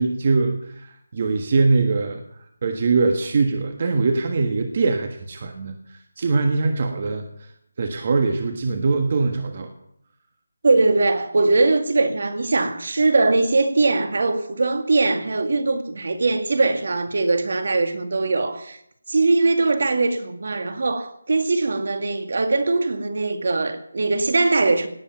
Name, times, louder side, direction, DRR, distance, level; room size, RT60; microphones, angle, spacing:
voice 1, 0.0-2.2 2.6-7.5 7.8-9.7, right 3 dB, 35° right, 1.4 m, -22 dB
voice 2, 10.6-18.8 19.1-24.9, right 3 dB, 55° right, 2.1 m, -21 dB
18.0 x 8.2 x 9.2 m
figure-of-eight pair, 175°, 0 cm